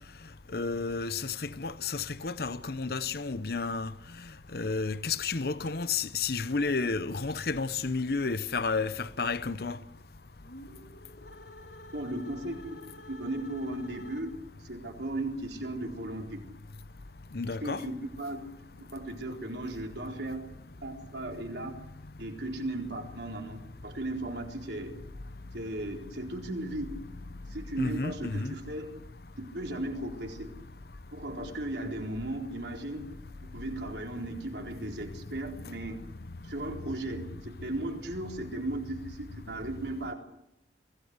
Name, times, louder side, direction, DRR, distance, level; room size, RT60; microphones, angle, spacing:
voice 1, 0.5-3.9 4.5-9.8 17.3-17.8 27.8-28.6, left 4 dB, 55° left, 0.8 m, -31 dB
sound 1, 10.4-14.6, left 1 dB, 70° left, 4.6 m, -50 dB
voice 2, 11.9-14.3 14.6-16.5 17.5-18.5 18.8-20.5 20.8-21.8 22.2-24.9 25.5-27.0 27.5-28.9 29.4-30.5 31.1-33.1 33.5-36.0 36.4-40.1, right 1 dB, 70° right, 4.2 m, -36 dB
24.0 x 17.0 x 8.2 m
head